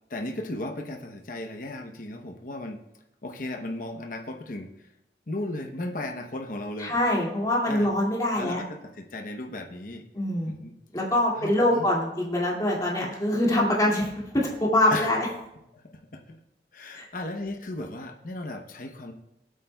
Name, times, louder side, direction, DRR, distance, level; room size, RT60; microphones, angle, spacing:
voice 1, 0.1-2.8 3.2-4.9 5.3-7.2 7.6-7.9 8.4-10.0 10.4-10.7 11.3-11.9 14.9-15.2 15.7-16.4 16.7-19.1, left 2 dB, 50° left, 3 dB, 0.9 m, -36 dB
voice 2, 6.8-8.6 10.1-10.5 10.9-15.3 16.9-17.1, left 1 dB, 20° left, -4 dB, 2.3 m, -24 dB
16.5 x 8.2 x 2.3 m, 0.87 s
head